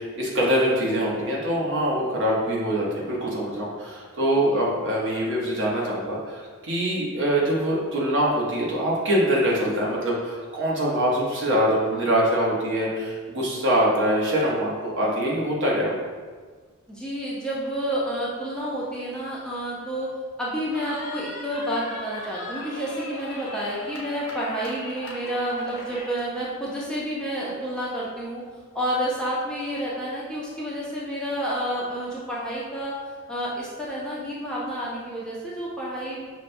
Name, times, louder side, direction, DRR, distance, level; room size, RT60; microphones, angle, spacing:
voice 1, 0.0-16.0, equal, 55° right, -4 dB, 0.9 m, -24 dB
voice 2, 16.9-20.1 20.4-28.4 28.7-33.0 33.3-36.2, equal, 5° left, -7 dB, 0.5 m, -29 dB
Cheering, 20.7-26.3, left 1 dB, 70° left, 0.8 m, -39 dB
5.9 x 2.2 x 2.6 m, 1.5 s
head